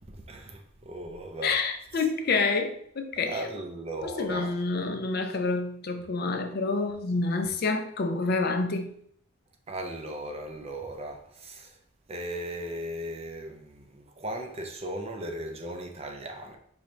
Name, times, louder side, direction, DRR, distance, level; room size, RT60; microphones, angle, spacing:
voice 1, 0.1-1.6 1.9-2.1 3.2-4.6 9.7-11.8 12.1-16.6, right 1 dB, 30° right, 0.4 m, -37 dB
voice 2, 1.4-3.4 4.0-9.0, left 3 dB, 45° left, 0.4 m, -28 dB
4.8 x 2.6 x 3.1 m
head